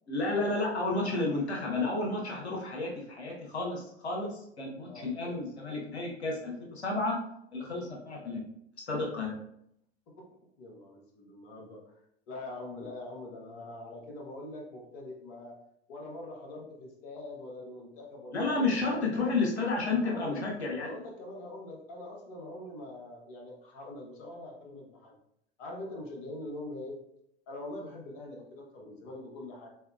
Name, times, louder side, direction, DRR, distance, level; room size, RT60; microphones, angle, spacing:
voice 1, 0.1-7.2 7.5-8.4 8.9-9.3 18.3-20.9, left 3 dB, 85° left, -1 dB, 1.0 m, -31 dB
voice 2, 10.6-11.9 12.3-15.6 15.9-19.3 19.8-20.4 20.8-25.1 25.6-27.0 27.5-29.7, left 2 dB, 55° left, 0 dB, 1.1 m, -43 dB
3.8 x 3.4 x 2.3 m, 0.74 s
figure-of-eight pair, 85°, 32 cm